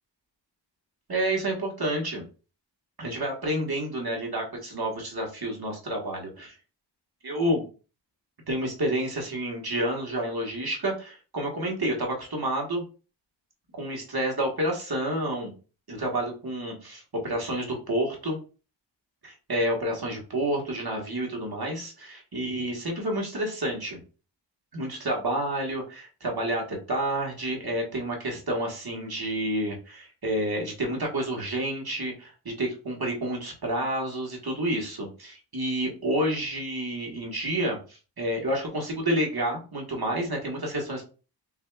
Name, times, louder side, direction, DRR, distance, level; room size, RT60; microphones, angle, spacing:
voice 1, 1.1-2.2 3.0-6.5 7.2-7.6 8.5-12.8 13.7-15.5 15.9-18.4 19.2-24.0 24.7-41.0, right 1 dB, 55° right, -1 dB, 1.4 m, -29 dB
5.9 x 2.7 x 2.3 m, 0.35 s
wide cardioid pair, 65°, 44 cm